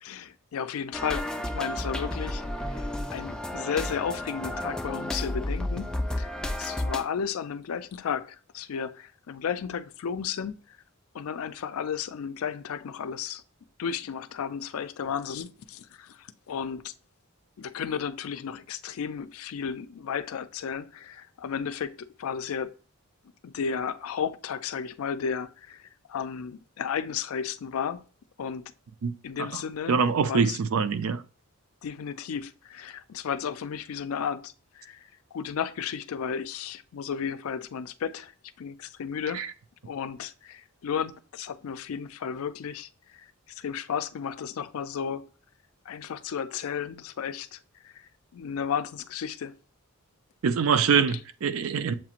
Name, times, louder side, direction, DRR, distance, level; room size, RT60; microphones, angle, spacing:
voice 1, 0.0-1.3 1.5-2.4 2.8-2.9 3.1-6.3 6.6-10.6 11.1-13.4 13.8-16.9 17.6-22.7 23.4-28.0 28.4-28.6 29.2-30.0 30.3-30.6 31.8-35.0 35.3-38.3 38.6-39.4 39.8-42.9 43.6-45.2 45.9-47.6 47.8-48.1 48.3-49.5, left 7 dB, 75° left, 0.4 m, -33 dB
sound 1, 0.9-7.0, left 1 dB, 5° left, 0.3 m, -32 dB
voice 2, 29.9-31.2 39.3-39.5 50.4-51.9, right 6 dB, 70° right, 0.4 m, -24 dB
7.4 x 2.5 x 2.8 m
head